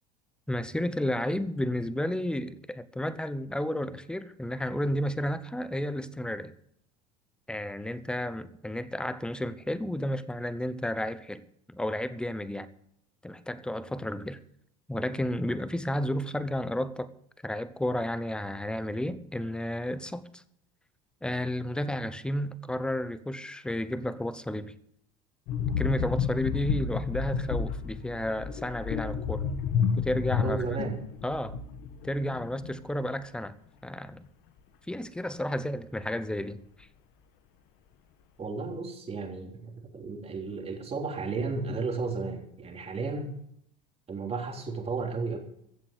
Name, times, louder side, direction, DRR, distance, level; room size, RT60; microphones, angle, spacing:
voice 1, 0.5-6.5 7.5-12.7 13.2-14.4 14.9-17.1 17.4-20.4 21.2-24.7 25.8-29.5 30.0-30.6 31.2-31.6 32.0-33.6 33.8-34.3 34.9-36.9, left 1 dB, 5° left, 0.9 m, -32 dB
sound 1, 25.5-32.9 33.1-33.4, left 6 dB, 65° left, 1.8 m, -31 dB
voice 2, 30.4-31.0 38.4-43.3 44.1-45.4, right 4 dB, 30° right, 3.5 m, -33 dB
15.0 x 7.5 x 8.2 m
supercardioid pair, 100°, 20 cm